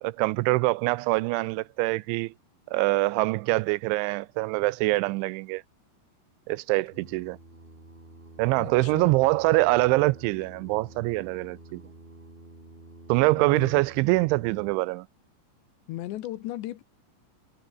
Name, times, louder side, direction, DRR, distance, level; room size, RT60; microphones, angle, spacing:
voice 1, 0.0-2.3 2.7-5.6 6.5-7.4 8.4-11.8 13.1-15.1, right 22 dB, 85° right, 2.9 m, -24 dB
Singing, 6.8-14.7, right 2 dB, 10° right, 3.3 m, -49 dB
voice 2, 8.6-9.2 13.4-13.7 15.9-16.8, left 14 dB, 75° left, 3.3 m, -36 dB
omnidirectional pair, 5.5 m